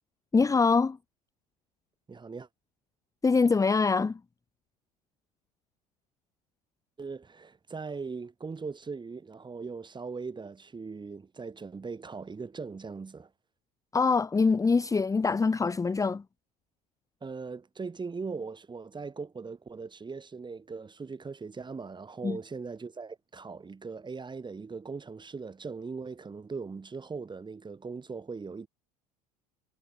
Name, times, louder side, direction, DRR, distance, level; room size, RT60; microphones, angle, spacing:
voice 1, 0.3-1.0 3.2-4.2 13.9-16.2 22.2-22.4, left 4 dB, 15° left, 0.9 m, -24 dB
voice 2, 2.1-2.5 7.0-13.3 17.2-28.7, right 4 dB, 20° right, 7.7 m, -40 dB
hypercardioid pair, 75°, 20 cm